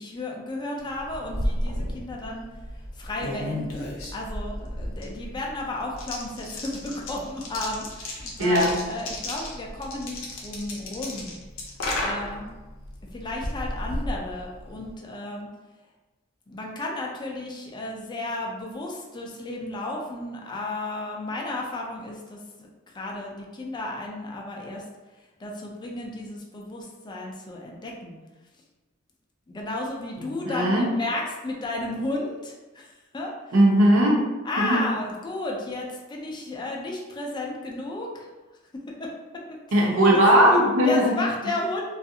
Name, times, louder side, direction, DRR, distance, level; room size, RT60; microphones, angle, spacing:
voice 1, 0.0-2.5 3.0-11.4 12.0-12.5 13.1-15.5 16.5-24.8 25.4-28.2 29.5-33.3 34.4-38.3 39.0-39.1 39.7-39.8 40.1-40.2 40.8-42.0, left 2 dB, 20° left, -1 dB, 0.4 m, -33 dB
sound 1, 0.9-14.9, left 1 dB, 70° left, 0.6 m, -34 dB
voice 2, 8.4-8.8 30.2-30.9 33.5-34.3 34.6-34.9 39.7-41.2, equal, 85° right, -2 dB, 0.6 m, -19 dB
2.4 x 2.3 x 2.7 m, 1.2 s
head